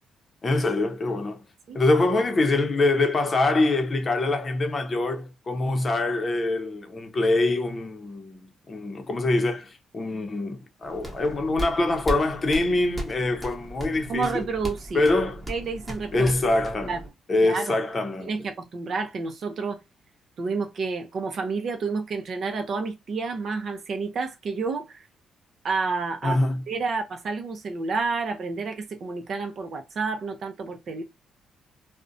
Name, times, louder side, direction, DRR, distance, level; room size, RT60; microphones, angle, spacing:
voice 1, 0.4-1.4 1.7-14.5 14.9-15.4 16.1-17.0 17.3-18.3 26.2-26.6, left 2 dB, 35° left, 0.6 m, -24 dB
sound 1, 10.8-17.1, equal, 10° right, 1.0 m, -37 dB
voice 2, 14.1-15.0 15.5-16.3 16.9-17.0 17.4-17.8 18.2-19.8 20.4-25.0 25.6-26.4 26.7-31.0, right 4 dB, 55° right, 0.6 m, -30 dB
2.5 x 2.1 x 2.5 m
cardioid pair, 90°, 0 cm